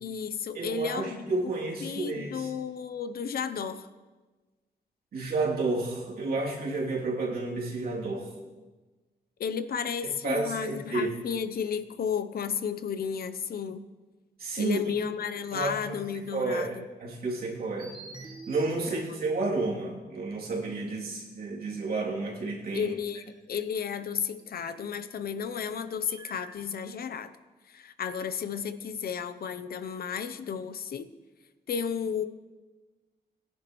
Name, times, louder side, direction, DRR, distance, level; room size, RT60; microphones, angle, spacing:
voice 1, 0.0-1.2 1.8-3.9 9.4-13.8 14.6-16.8 18.9-19.2 22.7-27.3 27.7-31.1 31.7-32.2, left 7 dB, 65° left, 11 dB, 0.7 m, -33 dB
voice 2, 0.5-2.5 5.1-8.3 10.0-11.2 14.4-14.8 15.5-16.0 16.3-17.9 18.5-22.9, right 3 dB, 65° right, -3 dB, 2.9 m, -31 dB
sound 1, 17.8-20.1 20.5-20.6 24.0-24.1 24.4-24.7 26.1-26.6, right 3 dB, 25° right, 1.4 m, -45 dB
20.0 x 10.5 x 3.1 m, 1.2 s
wide cardioid pair, 130°, 17 cm